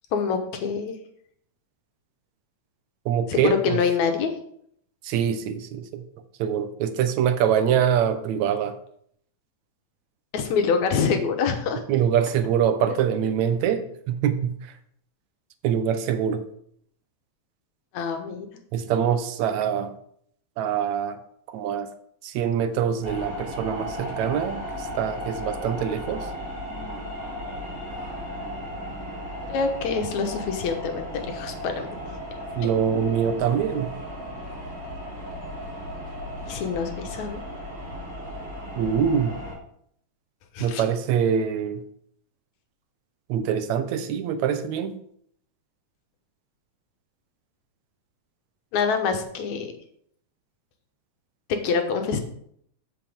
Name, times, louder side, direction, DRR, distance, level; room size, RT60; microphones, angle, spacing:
voice 1, 0.1-1.0 3.3-4.3 10.3-11.8 17.9-18.5 29.5-31.9 36.5-37.4 40.5-40.8 48.7-49.7 51.5-52.2, left 5 dB, 80° left, 6 dB, 2.4 m, -25 dB
voice 2, 3.1-3.8 5.0-6.0 6.4-8.8 11.9-14.5 15.6-16.4 18.7-19.9 20.6-21.2 21.5-21.9 22.2-26.3 32.6-33.9 38.8-39.4 40.6-41.8 43.3-45.0, right 8 dB, 75° right, 10 dB, 2.0 m, -24 dB
sound 1, 23.0-39.5, equal, 20° right, 4.3 m, -35 dB
14.0 x 6.0 x 3.6 m, 0.67 s
omnidirectional pair, 3.3 m